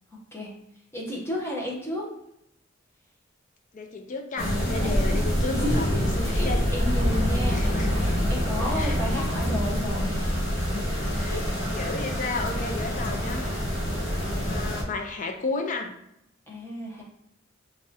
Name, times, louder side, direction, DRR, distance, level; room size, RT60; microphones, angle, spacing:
voice 1, 0.9-2.1 4.7-4.9 5.5-5.9 6.3-10.4 11.3-11.4 16.5-17.0, left 1 dB, 15° left, -3 dB, 0.9 m, -32 dB
voice 2, 3.7-6.6 7.5-7.9 8.7-9.0 11.1-11.4 11.7-13.6 14.1-15.9, left 3 dB, 40° left, 4 dB, 0.4 m, -33 dB
sound 1, 4.4-14.8, equal, 65° left, 1.2 m, -26 dB
3.5 x 3.1 x 2.8 m, 0.78 s
head